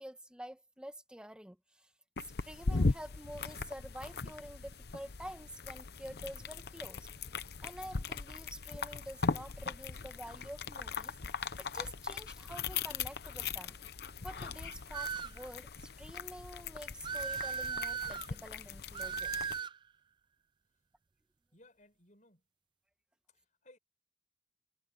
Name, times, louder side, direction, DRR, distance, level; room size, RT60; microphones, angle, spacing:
voice 1, 0.0-1.9 2.4-7.1 7.6-11.1 11.6-13.8 14.2-19.3, equal, 5° right, 1.6 m, -48 dB
sound 1, 2.2-19.6, left 4 dB, 55° left, 0.8 m, -39 dB
sound 2, 14.9-15.4 17.0-18.3 18.9-19.8, right 6 dB, 25° right, 0.4 m, -37 dB
voice 2, 21.5-22.5 23.3-23.8, left 1 dB, 40° left, 6.7 m, -62 dB
head